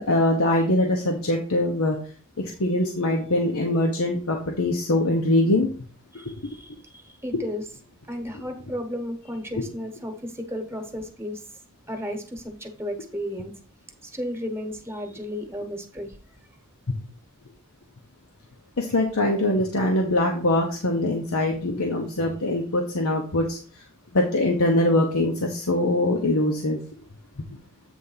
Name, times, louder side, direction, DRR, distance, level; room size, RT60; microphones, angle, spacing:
voice 1, 0.0-2.0 2.4-5.7 18.8-23.6 24.1-26.8, left 1 dB, 85° left, 1 dB, 1.1 m, -23 dB
voice 2, 6.1-7.7 8.1-11.6 11.9-13.5 14.0-16.2, equal, 10° right, 5 dB, 1.2 m, -34 dB
8.3 x 3.5 x 5.6 m, 0.41 s
head